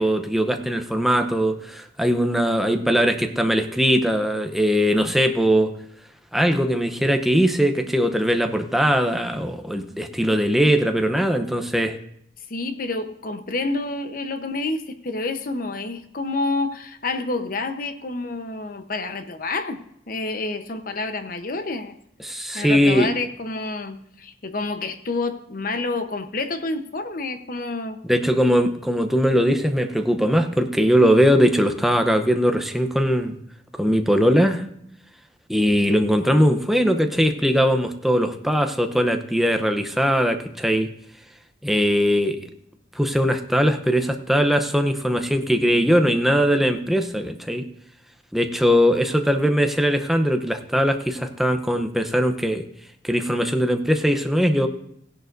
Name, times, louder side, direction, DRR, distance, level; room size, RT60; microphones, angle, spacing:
voice 1, 0.0-5.7 6.3-12.0 22.2-23.1 28.0-33.4 33.8-34.6 35.5-40.9 41.6-42.4 42.9-47.7 48.3-52.6 53.0-54.7, equal, ahead, 6 dB, 0.7 m, -20 dB
voice 2, 12.5-19.8 20.1-22.0 22.5-28.0, left 3 dB, 50° left, 8 dB, 0.9 m, -28 dB
16.0 x 11.0 x 2.6 m, 0.73 s
head